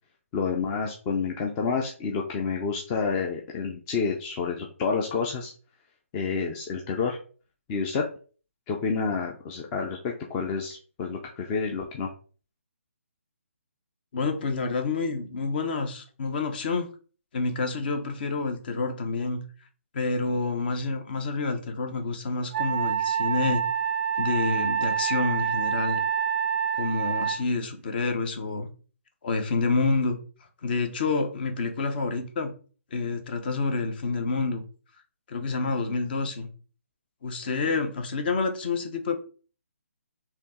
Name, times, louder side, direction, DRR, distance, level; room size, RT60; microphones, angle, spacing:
voice 1, 0.3-5.5 6.1-7.2 7.7-8.0 8.7-12.1, left 5 dB, 20° left, 0.5 m, -29 dB
voice 2, 14.1-16.9 17.3-19.5 19.9-23.6 24.2-26.0 26.8-28.7 29.2-30.2 30.6-32.5 32.9-34.6 35.3-36.5 37.2-39.2, left 3 dB, 40° left, 0.9 m, -28 dB
Wind instrument woodwind instrument, 22.5-27.4, right 8 dB, 35° right, 0.3 m, -27 dB
4.4 x 2.9 x 3.7 m
hypercardioid pair, 155°, 8 cm